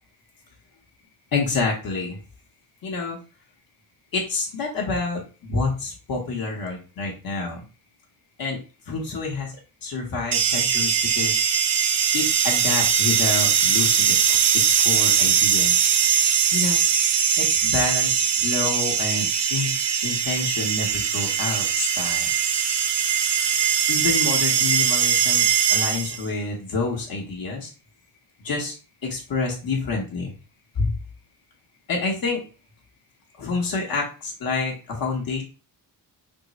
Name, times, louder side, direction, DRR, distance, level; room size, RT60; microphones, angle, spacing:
voice 1, 1.3-2.2 2.8-3.2 4.1-7.6 8.4-8.6 8.9-9.5 9.8-11.4 12.1-14.4 14.6-15.9 16.5-16.8 17.4-19.7 20.0-22.3 23.9-27.7 28.4-28.8 29.0-30.3 30.8-31.0 31.9-32.4 33.4-35.4, left 3 dB, 60° left, -1 dB, 1.0 m, -28 dB
sound 1, 10.3-26.3, right 7 dB, 85° right, 0.6 m, -21 dB
3.6 x 2.0 x 4.0 m, 0.34 s
cardioid pair, 135°, 40 cm